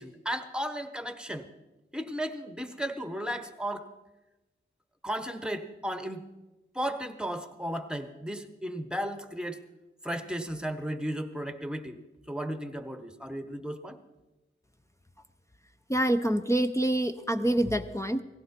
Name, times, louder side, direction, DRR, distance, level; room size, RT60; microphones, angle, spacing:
voice 1, 0.0-1.5 1.9-3.9 5.0-6.2 6.7-9.6 10.0-12.0 12.3-14.0, equal, 5° right, 9 dB, 1.1 m, -34 dB
voice 2, 15.9-18.2, right 1 dB, 15° left, 8 dB, 0.7 m, -26 dB
18.0 x 15.5 x 4.5 m, 1.1 s
wide cardioid pair, 80°, 21 cm